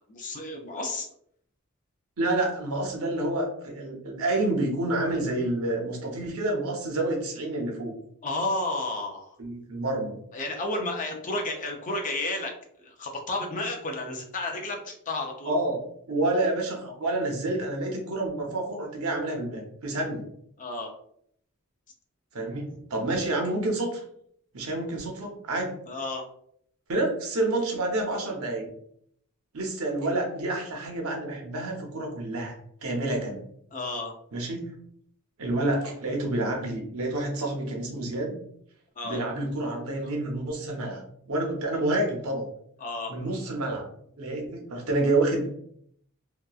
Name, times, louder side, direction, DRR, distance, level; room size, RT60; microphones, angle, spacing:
voice 1, 0.1-1.1 8.2-9.4 10.3-12.5 12.8-15.5 20.6-20.9 25.9-26.2 33.7-34.1 39.0-39.2 42.8-43.1, left 2 dB, 35° left, 2 dB, 0.5 m, -32 dB
voice 2, 2.2-8.0 9.4-10.2 15.4-20.3 22.3-24.0 24.5-25.8 26.9-28.7 29.5-33.5 34.3-34.8 35.4-38.4 39.0-41.0 41.3-42.5 43.1-43.9 44.2-45.5, right 2 dB, 75° right, 1 dB, 0.7 m, -28 dB
2.8 x 2.3 x 2.3 m, 0.66 s
head